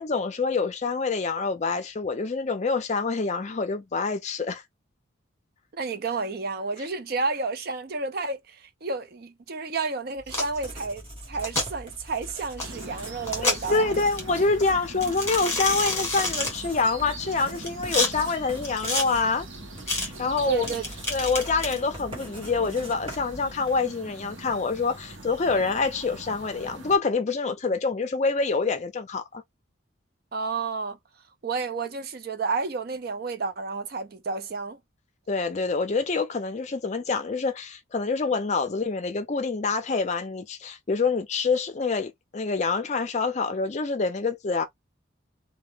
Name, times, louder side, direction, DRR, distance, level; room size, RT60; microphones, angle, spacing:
voice 1, 0.0-4.6 13.4-19.5 19.9-20.7 21.1-29.4 35.3-44.7, left 4 dB, 35° left, 0.4 m, -26 dB
voice 2, 5.7-14.0 20.5-20.9 30.3-31.0 31.4-34.8, right 4 dB, 50° right, 0.5 m, -31 dB
Writing, 10.2-24.0, equal, 25° right, 1.0 m, -43 dB
sound 1, 10.3-10.6 11.3-11.7 12.6-12.7 13.2-13.8 14.2-14.3 15.0-16.5 17.3-18.1 18.6-19.0 19.9-20.1 20.7-21.8, left 2 dB, 10° left, 1.1 m, -28 dB
sound 2, 12.6-27.0, right 2 dB, 75° right, 0.9 m, -42 dB
2.2 x 2.1 x 3.2 m
head